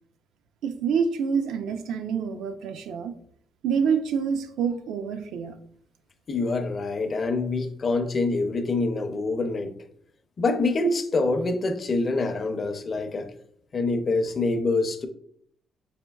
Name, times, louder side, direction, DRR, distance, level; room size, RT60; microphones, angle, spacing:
voice 1, 0.6-3.1 3.6-5.5, right 6 dB, 85° right, 0.5 m, -27 dB
voice 2, 6.3-9.7 10.4-13.3 13.7-15.1, left 3 dB, 30° left, 0.5 m, -25 dB
5.0 x 4.2 x 2.3 m
cardioid pair, 150°, 0 cm